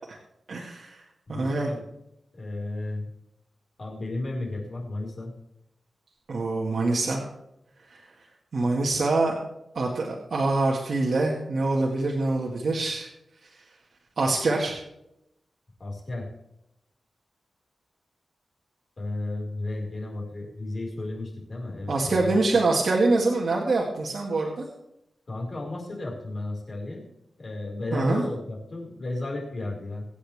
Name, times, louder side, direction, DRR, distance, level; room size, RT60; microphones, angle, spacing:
voice 1, 0.5-1.0 1.3-1.7 6.3-7.3 8.5-9.4 9.7-13.1 14.2-14.8 21.9-24.7 27.9-28.2, right 2 dB, 55° right, -2 dB, 2.1 m, -25 dB
voice 2, 1.3-1.8 2.3-3.1 3.8-5.3 15.8-16.3 19.0-22.4 25.3-27.1 27.4-30.1, left 2 dB, 40° left, -2 dB, 5.4 m, -33 dB
25.0 x 8.4 x 3.6 m, 0.82 s
wide cardioid pair, 145°, 0 cm